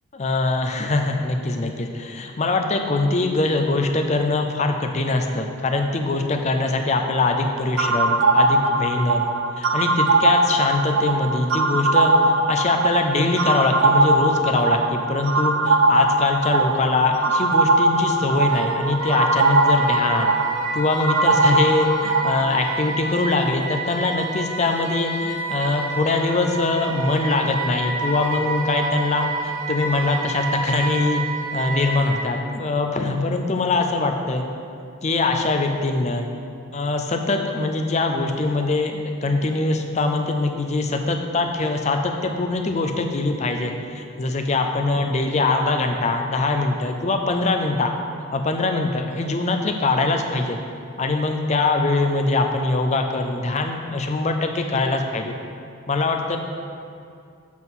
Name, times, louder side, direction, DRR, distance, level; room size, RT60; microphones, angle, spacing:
voice 1, 0.1-9.2 9.6-12.1 12.5-20.4 20.7-31.2 31.5-34.5 35.0-36.3 36.7-47.9 48.3-50.6 51.0-55.3 55.9-56.4, left 3 dB, 30° left, 4 dB, 0.5 m, -23 dB
sound 1, 7.8-22.5, right 2 dB, 65° right, 0.4 m, -20 dB
Wind instrument woodwind instrument, 18.5-32.3, right 3 dB, 80° right, 0.7 m, -29 dB
7.4 x 3.8 x 6.1 m, 2.4 s
head